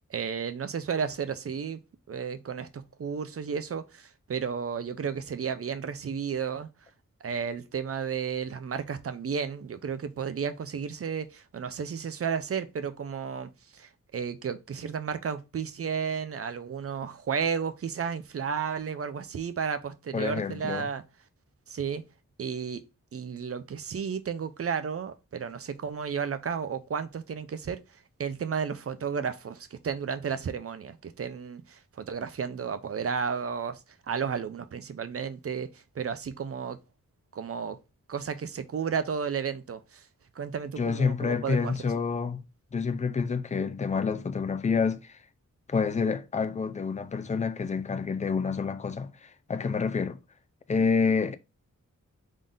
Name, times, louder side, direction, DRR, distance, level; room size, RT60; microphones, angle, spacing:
voice 1, 0.1-1.8 2.1-6.7 7.2-21.0 21.7-22.0 22.4-22.8 23.1-27.8 28.2-33.8 34.1-36.8 37.3-37.8 38.1-40.1 40.4-41.8, right 6 dB, 45° right, 0.5 m, -33 dB
voice 2, 20.1-20.9 40.8-42.4 42.7-45.1 45.7-50.2 50.7-51.4, left 5 dB, 25° left, 0.3 m, -28 dB
3.7 x 3.7 x 2.5 m
wide cardioid pair, 135°, 32 cm